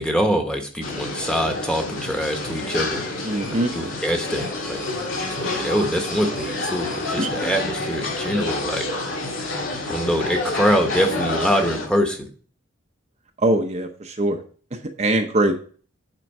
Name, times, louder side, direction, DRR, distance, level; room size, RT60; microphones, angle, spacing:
voice 1, 0.0-3.0 3.7-4.8 5.3-8.9 9.8-12.3, equal, 5° left, 3 dB, 1.1 m, -24 dB
sound 1, 0.8-11.9, left 2 dB, 75° left, 2.1 m, -28 dB
voice 2, 3.2-3.7 7.2-7.3 13.4-14.4 14.7-15.5, right 1 dB, 35° right, 4 dB, 0.7 m, -22 dB
9.2 x 3.8 x 5.3 m, 0.43 s
head